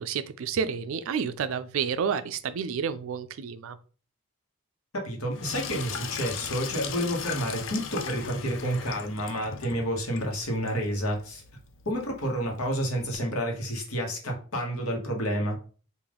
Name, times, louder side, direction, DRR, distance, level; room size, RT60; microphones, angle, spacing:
voice 1, 0.0-3.8, right 6 dB, 65° right, 0.3 m, -30 dB
voice 2, 4.9-11.4 11.8-15.6, equal, 75° left, 1.2 m, -30 dB
Sink (filling or washing), 5.3-13.2, left 6 dB, 60° left, 0.4 m, -39 dB
3.7 x 2.5 x 3.4 m
head